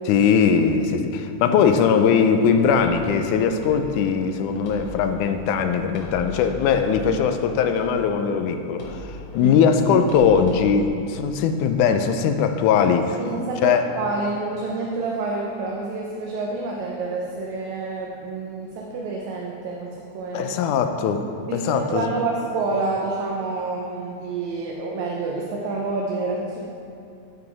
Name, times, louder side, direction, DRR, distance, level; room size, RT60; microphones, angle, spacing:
voice 1, 0.1-13.2 13.6-13.8 20.3-22.1, left 6 dB, 85° left, 7 dB, 2.1 m, -20 dB
sound 1, 2.6-10.9, right 1 dB, 55° left, 2.0 m, -40 dB
voice 2, 13.2-20.6 21.5-26.6, right 3 dB, 75° right, -2 dB, 2.0 m, -28 dB
11.0 x 4.9 x 4.7 m, 2.5 s
omnidirectional pair, 3.5 m